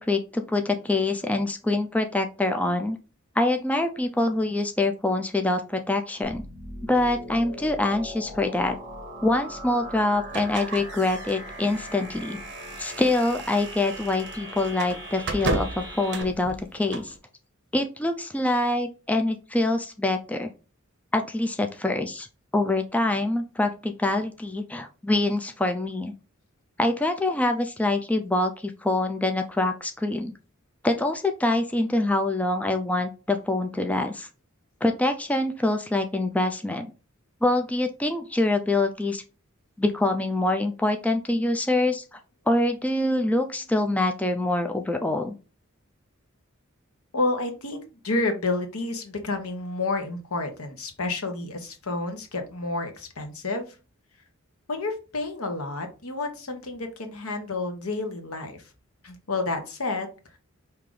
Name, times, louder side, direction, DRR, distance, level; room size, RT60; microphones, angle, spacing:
voice 1, 0.0-3.0 3.4-6.4 6.8-8.8 9.2-12.4 12.8-17.1 17.7-20.5 21.1-22.3 22.5-26.1 26.8-30.3 30.8-34.3 34.8-36.9 37.4-39.2 39.8-42.2 42.5-45.3, left 2 dB, 5° left, 5 dB, 0.3 m, -25 dB
sound 1, 6.2-16.2, right 1 dB, 20° right, 1.9 m, -40 dB
sound 2, 10.3-17.2, right 2 dB, 55° right, 0.8 m, -35 dB
voice 2, 47.1-53.8 54.7-58.6 59.0-60.4, left 2 dB, 90° left, 6 dB, 1.1 m, -30 dB
4.8 x 2.8 x 3.8 m, 0.33 s
head